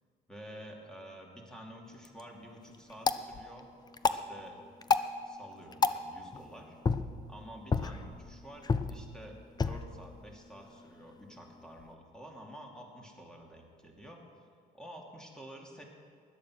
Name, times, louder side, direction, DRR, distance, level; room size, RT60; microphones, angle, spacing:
voice 1, 0.3-3.7 4.1-4.6 5.2-6.8 7.3-14.5 14.7-15.8, equal, 5° left, 0 dB, 2.6 m, -50 dB
sound 1, 1.9-11.9, left 4 dB, 25° left, 0.6 m, -35 dB
16.5 x 11.5 x 6.2 m, 2.3 s
cardioid pair, 110°, 17 cm